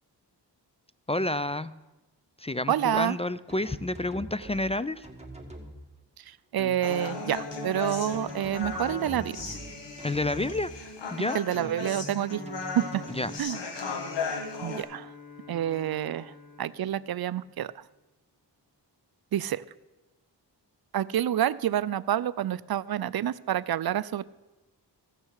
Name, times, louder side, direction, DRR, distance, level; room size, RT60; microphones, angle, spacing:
voice 1, 1.1-1.7 2.4-5.0 10.0-10.7 11.1-11.4 13.1-13.3, left 2 dB, 15° left, 15 dB, 0.3 m, -29 dB
voice 2, 2.7-3.2 6.3-9.4 11.3-12.4 12.7-13.0 13.4-13.6 14.6-15.1 15.5-16.3 16.6-17.7 19.3-19.6 20.9-24.2, right 11 dB, 60° right, 19 dB, 0.5 m, -28 dB
sound 1, 3.5-4.6 5.0-5.7 6.6-9.6 10.0-10.6 11.5-13.4, right 1 dB, 15° right, 1.9 m, -43 dB
Human voice, 6.8-14.8, left 4 dB, 80° left, 1.6 m, -36 dB
Bowed string instrument, 13.2-18.0, left 5 dB, 45° left, 2.6 m, -51 dB
16.0 x 6.5 x 6.5 m, 1.1 s
cardioid pair, 70°, 42 cm